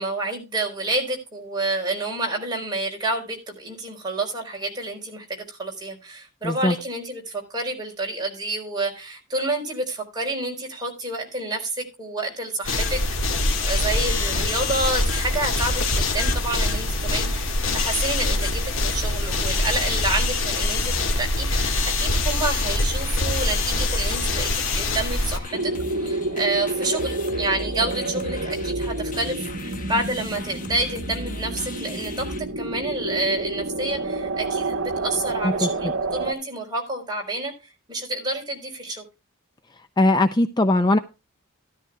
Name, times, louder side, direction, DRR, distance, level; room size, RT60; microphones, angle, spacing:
voice 1, 0.0-13.0 13.6-25.7 26.0-32.2 32.6-37.5 37.9-39.0, right 2 dB, 20° right, 0 dB, 4.3 m, -29 dB
voice 2, 6.4-6.7 35.4-35.9 40.0-41.0, left 2 dB, 20° left, 10 dB, 0.5 m, -20 dB
sound 1, 12.6-25.4, left 2 dB, 65° left, 1.9 m, -24 dB
sound 2, 18.7-32.4, left 1 dB, 40° left, 1.0 m, -37 dB
sound 3, 25.5-36.3, right 2 dB, 70° right, 1.2 m, -29 dB
14.0 x 13.0 x 2.3 m, 0.29 s
head